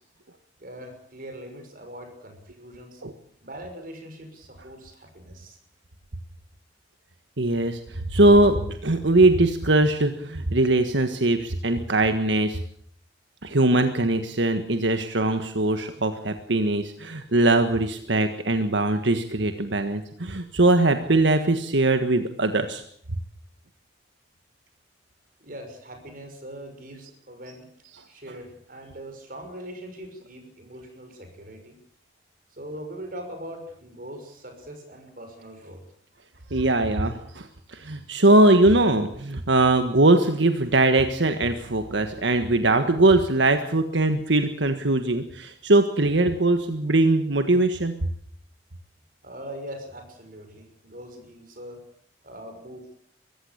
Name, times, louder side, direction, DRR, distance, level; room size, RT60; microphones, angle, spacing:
voice 1, 0.6-3.0 3.4-5.6 25.4-27.7 28.1-31.8 32.5-35.8 49.2-51.8 52.2-52.9, right 1 dB, 50° right, 5 dB, 6.1 m, -41 dB
voice 2, 7.4-12.6 13.4-22.8 36.5-47.9, right 2 dB, 85° right, 8 dB, 1.6 m, -21 dB
23.5 x 15.5 x 8.6 m, 0.65 s
head